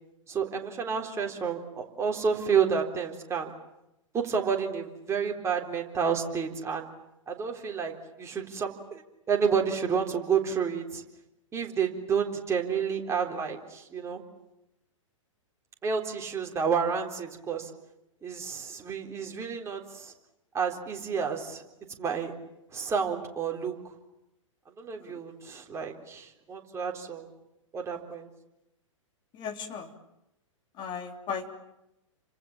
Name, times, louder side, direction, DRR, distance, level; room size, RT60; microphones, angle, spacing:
voice 1, 0.3-3.5 4.1-6.9 7.3-9.0 9.3-11.0 11.5-14.2 15.8-17.7 18.2-20.1 20.5-21.6 22.0-22.3 22.7-23.9 24.8-27.3 27.7-28.3, right 6 dB, 15° right, 2 dB, 3.8 m, -30 dB
voice 2, 29.3-29.9 30.8-31.5, left 6 dB, 30° left, 4 dB, 3.4 m, -36 dB
30.0 x 26.0 x 7.4 m, 0.88 s
figure-of-eight pair, 110°, 17 cm